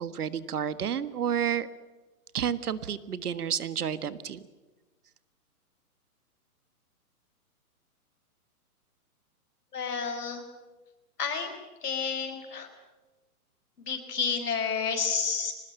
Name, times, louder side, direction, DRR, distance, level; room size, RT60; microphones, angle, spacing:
voice 1, 0.0-1.7 2.3-4.4, right 8 dB, 80° right, 14 dB, 1.6 m, -30 dB
voice 2, 9.7-10.4 11.2-11.5 11.8-12.7 13.8-15.5, left 6 dB, 90° left, 5 dB, 6.2 m, -30 dB
24.0 x 20.0 x 9.0 m, 1.2 s
hypercardioid pair, 175°, 45 cm